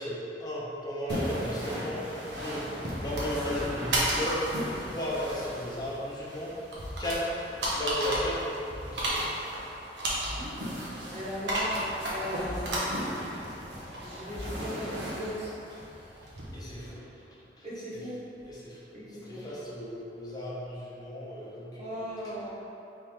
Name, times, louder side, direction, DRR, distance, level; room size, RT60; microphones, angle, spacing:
voice 1, 0.0-2.1 2.3-2.7 3.0-4.4 4.8-6.5 7.0-7.4 7.7-9.2 16.5-17.0 18.4-18.8 19.2-21.7, equal, 25° left, -7 dB, 0.9 m, -35 dB
sound 1, 1.1-16.9, equal, 75° right, 0.9 m, -34 dB
voice 2, 11.1-11.8 12.1-13.0 14.0-15.5 17.6-18.2 18.9-19.5 21.8-22.5, equal, 40° right, -8 dB, 1.1 m, -38 dB
3.6 x 3.2 x 4.4 m, 2.9 s
head